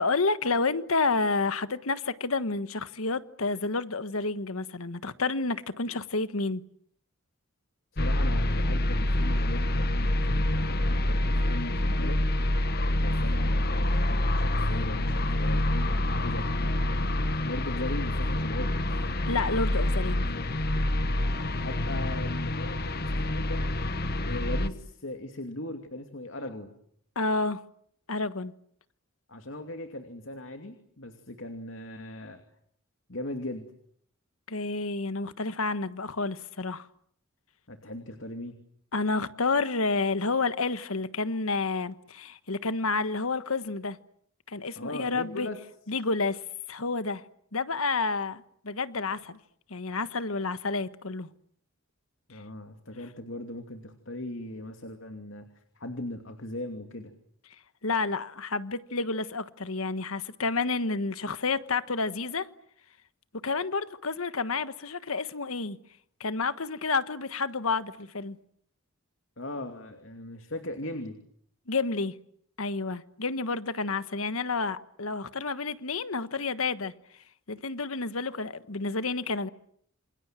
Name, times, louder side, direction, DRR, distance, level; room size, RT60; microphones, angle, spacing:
voice 1, 0.0-6.6 19.3-20.3 27.1-27.6 28.1-28.5 34.5-36.9 38.9-44.0 44.5-45.5 45.9-46.4 46.7-47.2 47.5-49.4 49.7-51.3 52.3-52.4 57.8-62.5 63.4-65.8 66.2-68.4 71.7-72.1 72.6-76.9 77.5-79.5, left 3 dB, 90° left, 1.4 m, -30 dB
voice 2, 7.9-12.2 13.0-17.0 17.4-18.8 21.6-23.7 24.2-26.7 29.3-32.4 33.1-33.6 37.7-38.5 44.8-45.6 52.3-55.5 55.8-57.1 69.4-71.2, left 1 dB, 65° left, 2.7 m, -39 dB
sound 1, 8.0-24.7, left 1 dB, 50° left, 1.4 m, -27 dB
28.5 x 27.5 x 7.6 m
head